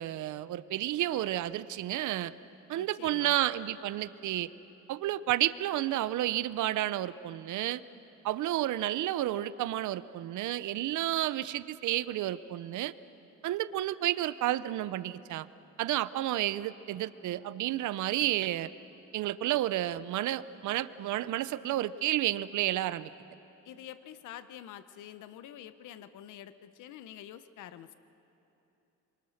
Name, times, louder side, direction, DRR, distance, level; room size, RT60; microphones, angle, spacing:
voice 1, 0.0-2.3 2.7-4.5 4.9-7.8 8.2-12.9 13.4-15.5 15.8-18.7 19.1-23.1, right 14 dB, 75° right, 16 dB, 0.7 m, -31 dB
voice 2, 2.8-3.3 23.6-27.9, left 11 dB, 80° left, 13 dB, 0.9 m, -47 dB
26.0 x 23.5 x 6.5 m, 3.0 s
cardioid pair, 90°, 30 cm